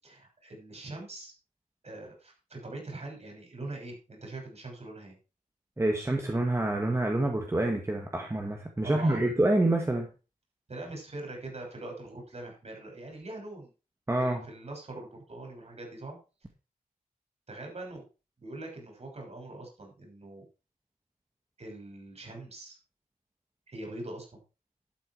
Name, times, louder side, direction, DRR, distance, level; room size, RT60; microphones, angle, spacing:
voice 1, 0.0-1.3 1.8-5.1 8.8-9.2 10.7-13.7 14.2-16.2 17.5-18.0 18.4-20.4 21.6-22.8 23.7-24.3, right 2 dB, 45° right, 1 dB, 6.6 m, -42 dB
voice 2, 5.8-10.1 14.1-14.4, right 1 dB, 20° right, 2 dB, 1.8 m, -27 dB
12.0 x 8.4 x 4.8 m, 0.33 s
wide cardioid pair, 115°, 15 cm